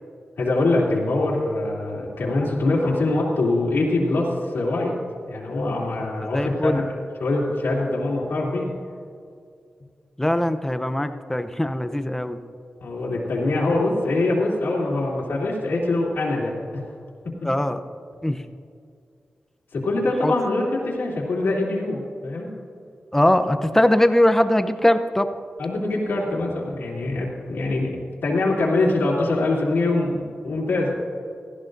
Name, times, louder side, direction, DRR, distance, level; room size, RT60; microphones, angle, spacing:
voice 1, 0.4-4.9 5.3-6.8 7.2-8.7 12.8-16.8 19.7-22.5 25.6-30.9, left 2 dB, 90° left, -5 dB, 2.8 m, -23 dB
voice 2, 6.3-6.8 10.2-12.4 17.4-17.8 18.2-18.4 20.2-20.3 23.1-25.3, left 1 dB, 10° left, 9 dB, 0.7 m, -21 dB
17.0 x 14.5 x 2.6 m, 2.3 s
wide cardioid pair, 90°, 4 cm